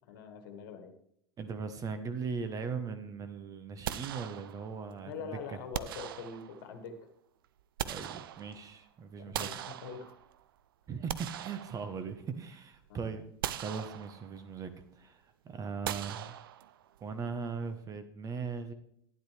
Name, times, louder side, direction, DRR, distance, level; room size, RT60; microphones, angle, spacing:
voice 1, 0.1-0.9 5.0-7.0 9.2-10.2 12.9-13.1, left 5 dB, 60° left, 7 dB, 1.5 m, -44 dB
voice 2, 1.4-5.6 7.8-9.5 10.9-13.2 13.5-16.3 17.0-18.7, right 5 dB, 25° right, 9 dB, 1.0 m, -39 dB
sound 1, 3.8-4.9 5.7-6.8 7.4-8.8 9.3-10.4 10.9-12.4 12.7-12.9 13.4-14.5 15.8-17.0, right 11 dB, 65° right, 0.5 m, -40 dB
12.0 x 9.8 x 3.3 m, 0.70 s
figure-of-eight pair, 85°, 13 cm